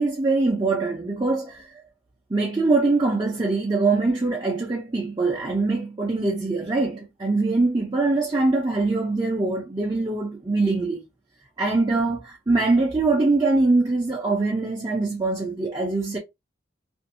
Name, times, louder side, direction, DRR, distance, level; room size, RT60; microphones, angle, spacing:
voice 1, 0.0-1.7 2.3-11.0 11.6-16.2, right 3 dB, 20° right, 0.5 m, -23 dB
2.5 x 2.2 x 2.5 m
head